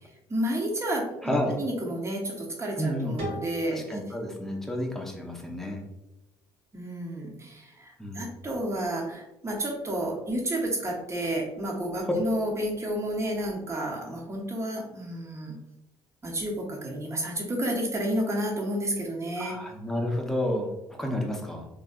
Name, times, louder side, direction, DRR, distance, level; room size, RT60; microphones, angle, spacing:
voice 1, 0.0-4.0 6.7-15.6 16.2-19.6, right 1 dB, 30° right, -1 dB, 1.0 m, -31 dB
voice 2, 1.2-1.6 2.8-3.1 3.7-5.8 8.0-8.2 12.0-12.1 19.4-21.7, left 1 dB, 5° left, 1 dB, 0.7 m, -30 dB
sound 1, 3.2-6.0, equal, 75° right, 1.4 m, -41 dB
3.3 x 2.6 x 2.4 m, 0.93 s
supercardioid pair, 65°, 10 cm